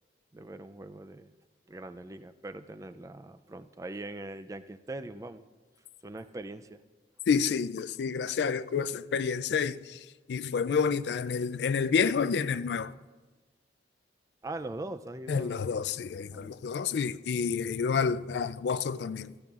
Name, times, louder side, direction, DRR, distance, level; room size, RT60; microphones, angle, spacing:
voice 1, 0.3-1.3 1.7-5.5 6.0-6.8 14.4-15.6 16.3-16.6, right 2 dB, 20° right, 0.3 m, -41 dB
voice 2, 7.3-12.9 15.3-19.3, left 6 dB, 70° left, 0.3 m, -29 dB
15.5 x 13.5 x 2.4 m
head